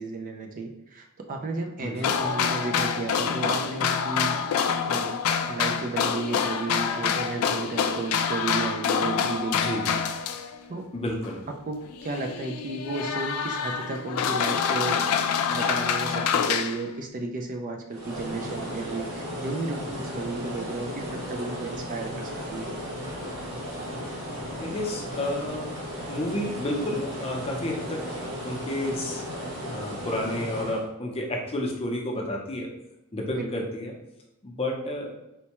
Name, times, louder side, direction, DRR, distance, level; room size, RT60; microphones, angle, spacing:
voice 1, 0.0-4.4 4.9-5.2 5.5-10.0 10.7-10.9 11.7-15.0 15.5-22.7 33.3-33.5, right 3 dB, 35° right, 4 dB, 0.3 m, -33 dB
voice 2, 1.8-2.1 9.5-9.9 10.9-11.4 24.6-25.8 26.1-28.1 28.4-29.2 29.7-32.7 33.1-33.9 34.4-35.1, left 1 dB, 25° left, 0 dB, 0.6 m, -31 dB
sound 1, 2.0-10.6 11.2-11.3 11.9-16.9, left 7 dB, 75° left, 0.3 m, -26 dB
sound 2, 17.9-30.8, equal, 85° right, 1.0 m, -35 dB
4.3 x 2.1 x 2.9 m, 0.92 s
head